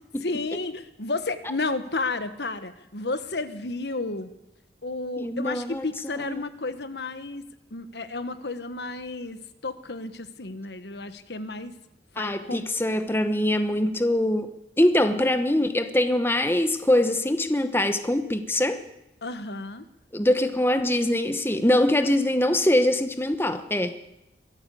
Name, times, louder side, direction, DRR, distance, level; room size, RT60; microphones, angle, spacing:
voice 1, 0.2-4.3 4.8-11.7 12.1-12.6 19.2-19.8, left 3 dB, 75° left, 11 dB, 1.4 m, -32 dB
voice 2, 5.2-5.8 6.1-6.3 12.2-18.8 20.1-24.0, left 1 dB, 15° left, 9 dB, 1.0 m, -23 dB
22.5 x 14.5 x 8.4 m, 0.91 s
head